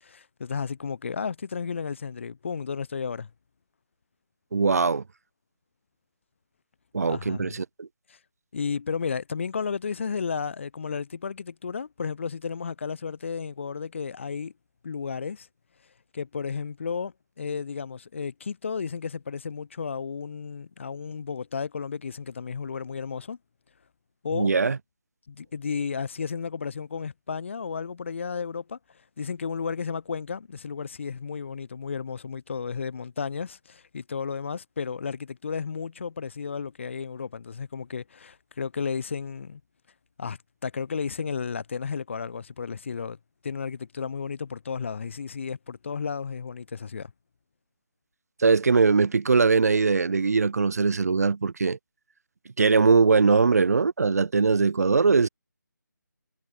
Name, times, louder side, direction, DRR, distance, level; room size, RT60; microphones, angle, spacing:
voice 1, 0.0-3.3 7.1-7.6 8.1-8.2 8.5-14.5 14.8-15.5 16.1-23.4 24.2-24.6 25.3-28.8 29.2-39.6 40.2-43.2 43.4-47.1, left 5 dB, 40° left, 0.7 m, -33 dB
voice 2, 4.5-5.0 6.9-7.9 24.4-24.8 48.4-51.8 52.6-55.3, right 4 dB, 50° right, 0.7 m, -21 dB
figure-of-eight pair, 155°, 10 cm